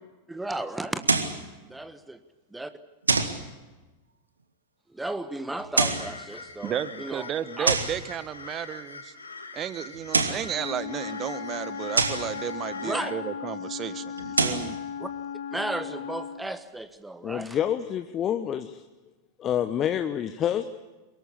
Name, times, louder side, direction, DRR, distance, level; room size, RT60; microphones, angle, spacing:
voice 1, 0.3-1.0 1.7-2.2 2.5-2.7 4.9-6.7 7.0-7.3 7.6-7.7 12.8-13.1 15.0-15.1 15.5-17.6, right 2 dB, 5° right, 11 dB, 1.3 m, -34 dB
sound 1, 1.0-1.4 3.1-3.4 5.6-6.1 7.7-8.0 9.9-10.5 12.0-12.3 14.2-14.7, right 3 dB, 75° right, 1.8 m, -25 dB
sound 2, 5.8-13.1, left 4 dB, 80° left, 2.4 m, -43 dB
voice 2, 6.6-9.1 9.5-14.8, right 9 dB, 30° right, 15 dB, 1.3 m, -33 dB
Wind instrument woodwind instrument, 10.5-16.5, left 7 dB, 60° left, 1.2 m, -36 dB
voice 3, 17.2-18.8 19.4-20.7, left 10 dB, 30° left, 9 dB, 1.0 m, -27 dB
23.5 x 21.5 x 8.5 m, 1.2 s
figure-of-eight pair, 90°, 0 cm